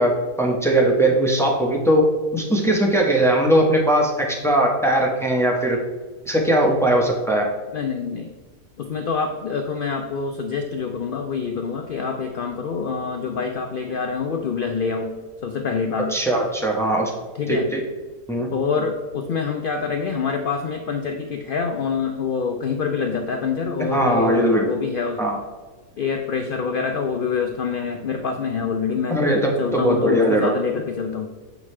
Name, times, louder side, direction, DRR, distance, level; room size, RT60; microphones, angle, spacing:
voice 1, 0.0-2.1 2.3-5.8 6.2-7.5 16.0-17.1 17.5-17.8 18.3-18.5 23.9-24.7 25.2-25.4 29.1-30.5, right 1 dB, 5° left, 0 dB, 0.6 m, -19 dB
voice 2, 7.7-8.3 8.8-15.1 15.4-16.2 17.4-17.7 18.5-25.2 26.0-29.2 29.6-31.3, left 5 dB, 85° left, 4 dB, 0.4 m, -26 dB
7.6 x 4.9 x 3.2 m, 1.3 s
omnidirectional pair, 1.6 m